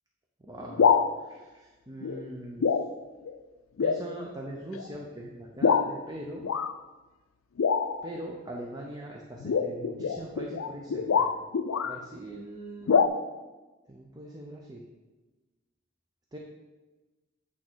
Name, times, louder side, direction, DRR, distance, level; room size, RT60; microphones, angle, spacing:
voice 1, 0.4-2.7 3.8-6.5 8.0-11.3 11.8-13.0 13.9-14.9 16.3-16.4, right 1 dB, 20° right, -1 dB, 0.7 m, -41 dB
sound 1, 0.6-1.1 2.0-2.3 2.6-2.9 3.3-3.4 3.8-4.0 4.7-4.9 5.6-5.9 6.4-6.7 7.6-8.1 9.4-12.0 12.9-13.1, left 6 dB, 80° left, 0.4 m, -25 dB
8.6 x 3.7 x 6.2 m, 1.2 s
head